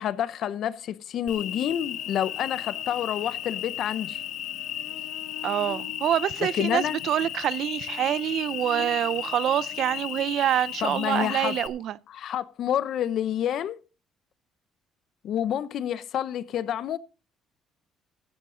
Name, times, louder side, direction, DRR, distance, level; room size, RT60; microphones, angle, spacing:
voice 1, 0.0-4.2 6.4-7.0 10.8-11.6 12.1-13.8 15.2-17.0, left 10 dB, 60° left, 0.7 m, -28 dB
Cricket, 1.3-11.7, left 11 dB, 75° left, 1.4 m, -35 dB
voice 2, 5.4-12.0, right 11 dB, 65° right, 0.5 m, -26 dB
15.5 x 9.1 x 3.8 m
cardioid pair, 135°, 0 cm